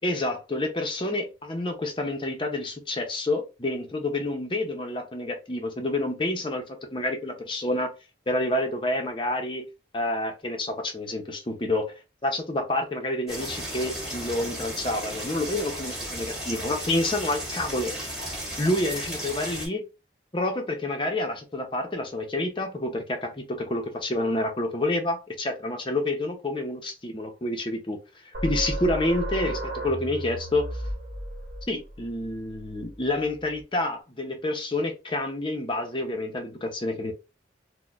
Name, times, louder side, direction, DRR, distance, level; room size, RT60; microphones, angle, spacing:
voice 1, 0.0-7.9 8.3-9.7 9.9-11.9 12.2-17.9 18.6-19.8 20.3-28.0 28.4-30.7 31.7-37.1, left 1 dB, 25° left, 4 dB, 0.6 m, -28 dB
sound 1, 13.3-19.7, right 1 dB, 5° right, 1.7 m, -34 dB
sound 2, 28.3-33.6, right 1 dB, 70° right, 1.0 m, -34 dB
4.1 x 2.1 x 2.4 m, 0.29 s
head